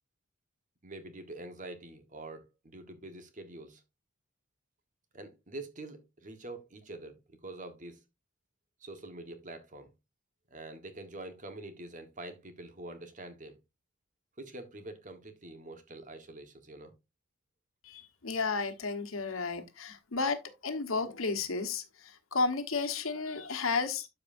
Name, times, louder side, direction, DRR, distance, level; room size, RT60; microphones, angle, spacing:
voice 1, 0.8-3.8 5.1-8.0 8.8-9.9 10.5-13.6 14.4-16.9, right 2 dB, 40° right, 1.3 m, -45 dB
voice 2, 17.8-24.1, left 4 dB, 90° left, 1.3 m, -33 dB
12.5 x 4.8 x 2.6 m
head